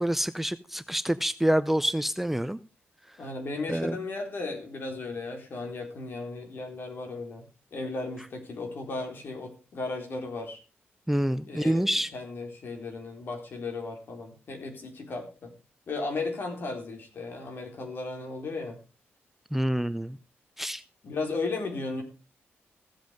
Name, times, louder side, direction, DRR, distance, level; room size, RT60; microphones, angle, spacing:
voice 1, 0.0-2.6 3.7-4.0 11.1-12.1 19.5-20.2 20.6-20.8, right 1 dB, 5° right, 0.5 m, -27 dB
voice 2, 3.2-7.4 7.7-10.6 11.5-11.8 12.1-15.5 15.9-18.8 21.0-22.0, left 3 dB, 55° left, 4.1 m, -35 dB
15.5 x 8.0 x 5.1 m
wide cardioid pair, 135°, 4 cm